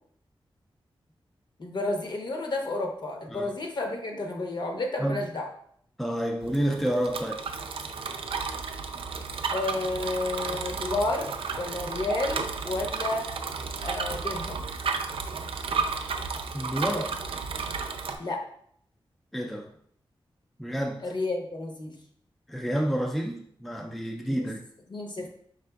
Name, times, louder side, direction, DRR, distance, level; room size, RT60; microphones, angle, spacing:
voice 1, 1.6-5.5 9.5-13.3 13.8-14.6 18.2-18.5 21.0-21.9 24.3-24.5 24.9-25.3, left 2 dB, 55° left, 2 dB, 0.8 m, -31 dB
voice 2, 6.0-7.4 16.5-17.2 19.3-19.7 20.6-21.0 22.5-24.6, equal, ahead, 2 dB, 0.4 m, -29 dB
Bicycle, 6.4-18.2, right 5 dB, 85° right, 0.4 m, -33 dB
5.1 x 3.6 x 2.3 m, 0.65 s
wide cardioid pair, 120°, 9 cm